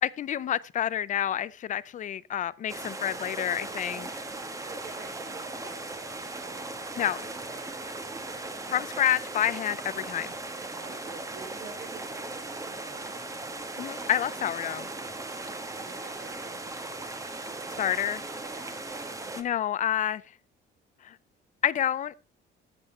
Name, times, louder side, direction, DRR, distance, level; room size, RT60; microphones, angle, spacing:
voice 1, 0.0-4.1 7.0-7.2 8.7-10.3 13.8-14.9 17.8-18.2 19.4-20.2 21.0-21.1 21.6-22.1, left 10 dB, 40° left, 0.5 m, -28 dB
sound 1, 2.7-19.4, right 2 dB, 15° right, 1.1 m, -38 dB
voice 2, 4.6-7.1 7.5-7.8 10.7-13.1 15.8-17.0 18.4-18.8, right 4 dB, 50° right, 4.6 m, -49 dB
13.0 x 7.6 x 4.3 m
cardioid pair, 155°, 21 cm